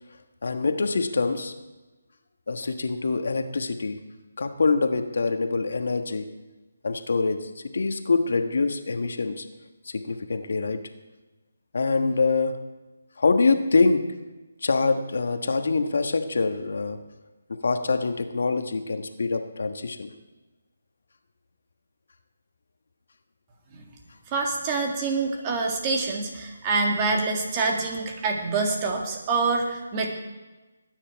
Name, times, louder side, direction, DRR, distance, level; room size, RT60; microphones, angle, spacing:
voice 1, 0.4-1.5 2.5-4.0 4.4-6.3 6.8-9.4 9.8-10.8 11.7-12.6 13.2-14.1 14.6-17.0 17.6-20.1, left 4 dB, 65° left, 7 dB, 1.3 m, -25 dB
voice 2, 24.3-30.1, right 3 dB, 25° right, 2 dB, 1.9 m, -26 dB
20.0 x 9.8 x 4.6 m, 1.1 s
figure-of-eight pair, 160°, 0 cm